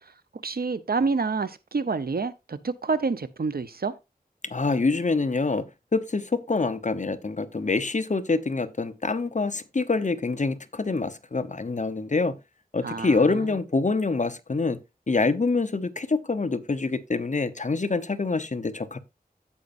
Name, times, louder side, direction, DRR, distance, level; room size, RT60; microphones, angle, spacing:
voice 1, 0.4-3.9 12.8-13.3, right 4 dB, 85° right, 0.7 m, -28 dB
voice 2, 4.4-5.7 5.9-12.3 12.7-14.8 15.1-19.0, left 3 dB, 55° left, 0.8 m, -26 dB
15.5 x 5.2 x 2.6 m
wide cardioid pair, 60°, 15 cm